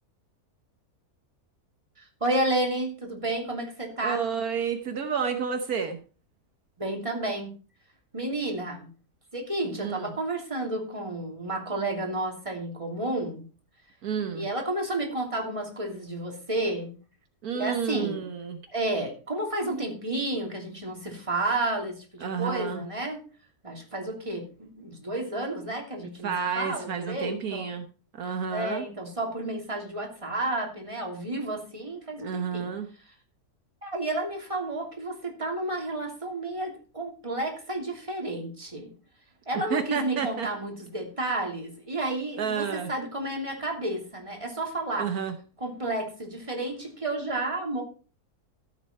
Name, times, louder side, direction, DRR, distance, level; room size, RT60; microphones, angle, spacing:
voice 1, 2.0-4.2 6.8-7.5 8.1-8.9 9.3-13.4 14.3-16.9 17.5-18.3 18.7-23.2 23.6-27.7 28.5-32.7 33.8-38.9 39.5-45.1 45.6-47.8, right 2 dB, 20° right, 1 dB, 3.0 m, -31 dB
voice 2, 4.0-6.0 9.8-10.1 14.0-14.5 17.4-18.6 22.2-22.8 26.2-27.9 28.2-28.9 32.2-32.9 39.7-40.5 42.4-42.9 45.0-45.3, right 6 dB, 75° right, 7 dB, 1.5 m, -30 dB
13.5 x 8.3 x 4.4 m, 0.37 s
omnidirectional pair, 1.6 m